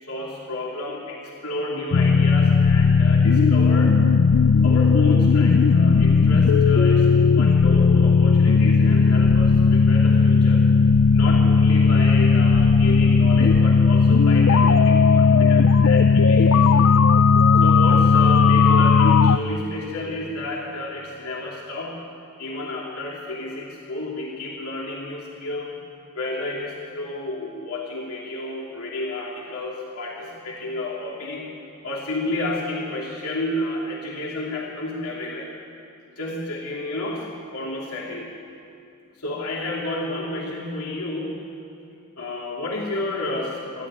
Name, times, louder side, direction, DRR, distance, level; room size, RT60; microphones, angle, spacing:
voice 1, 0.0-4.0 4.6-10.7 11.1-16.9 17.6-22.0 22.4-25.8 26.1-31.5 31.8-35.5 36.2-38.3 39.2-41.4 42.2-43.9, left 2 dB, 90° left, -3 dB, 3.1 m, -31 dB
sound 1, 1.9-19.4, left 5 dB, 65° left, 0.5 m, -16 dB
25.0 x 12.5 x 9.0 m, 2.5 s
head